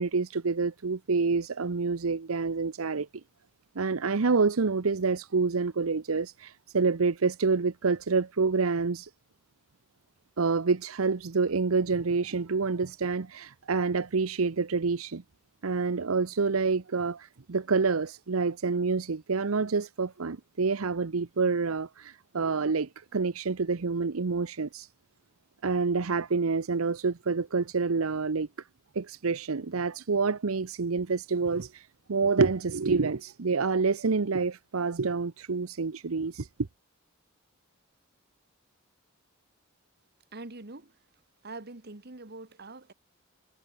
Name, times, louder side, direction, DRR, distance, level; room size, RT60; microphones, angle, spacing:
voice 1, 0.0-3.1 3.8-9.1 10.4-15.2 15.6-24.9 25.6-28.5 28.9-36.5, right 4 dB, 85° right, 0.8 m, -27 dB
voice 2, 40.3-41.0 41.4-42.9, right 2 dB, 50° right, 1.8 m, -44 dB
head